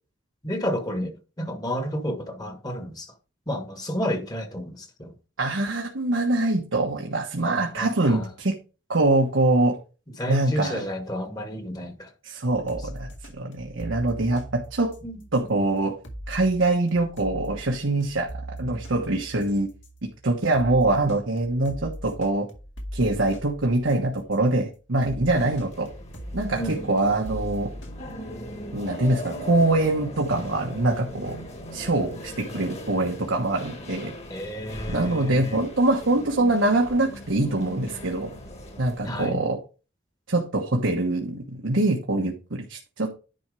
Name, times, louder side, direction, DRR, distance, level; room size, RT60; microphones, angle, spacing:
voice 1, 0.4-3.1 3.5-5.1 7.4-8.3 10.2-12.1 15.0-15.2 25.3-25.5 26.6-26.8 34.3-35.6 39.0-39.4, equal, 20° left, 1.4 m, -31 dB
voice 2, 5.4-8.6 8.9-9.8 10.3-10.8 12.2-14.9 15.3-16.0 16.3-18.3 18.6-19.7 20.0-22.5 22.9-25.9 26.3-27.7 28.7-31.3 31.7-34.1 34.9-38.3 38.8-39.6 40.3-43.2, right 2 dB, 85° right, 1.3 m, -24 dB
sound 1, 12.7-24.5 25.0-28.2, equal, 70° left, 2.1 m, -40 dB
sound 2, 25.3-39.3, left 1 dB, 35° left, 1.9 m, -39 dB
10.5 x 4.4 x 4.8 m
head